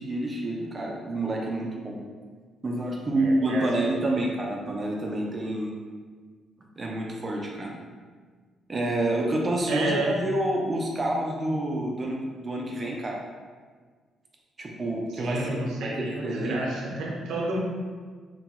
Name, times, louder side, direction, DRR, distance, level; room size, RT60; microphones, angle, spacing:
voice 1, 0.0-2.0 2.6-5.7 6.8-7.7 8.7-13.2 14.6-16.6, right 1 dB, 30° right, -1 dB, 0.5 m, -28 dB
voice 2, 3.1-3.6 3.9-4.0 9.7-10.1 15.1-17.6, right 2 dB, 85° right, -3 dB, 0.6 m, -30 dB
2.9 x 2.2 x 2.9 m, 1.5 s
cardioid pair, 90°, 0 cm